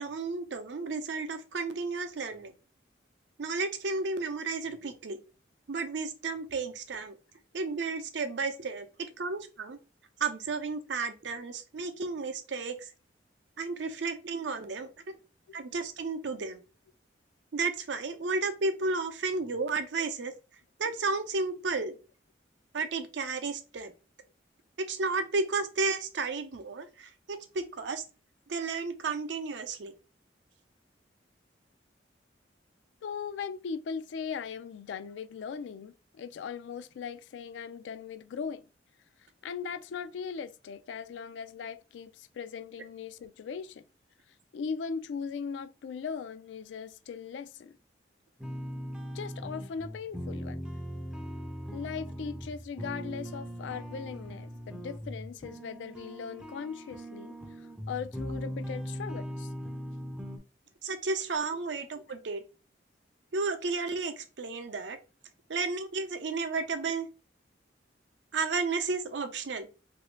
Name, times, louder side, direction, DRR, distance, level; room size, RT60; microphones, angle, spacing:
voice 1, 0.0-2.5 3.4-5.2 5.7-7.2 7.5-9.8 10.2-12.9 13.6-14.9 15.5-16.6 17.5-20.3 20.8-22.0 22.7-23.9 24.8-28.0 28.5-29.9 60.8-62.4 63.3-65.0 65.5-67.1 68.3-69.7, right 4 dB, 75° right, 0.5 m, -32 dB
voice 2, 33.0-38.6 39.4-43.8 44.5-47.8 49.1-50.6 51.7-59.5, left 6 dB, 80° left, 0.3 m, -39 dB
sound 1, 48.4-60.4, equal, 5° right, 0.4 m, -40 dB
2.9 x 2.6 x 3.1 m
head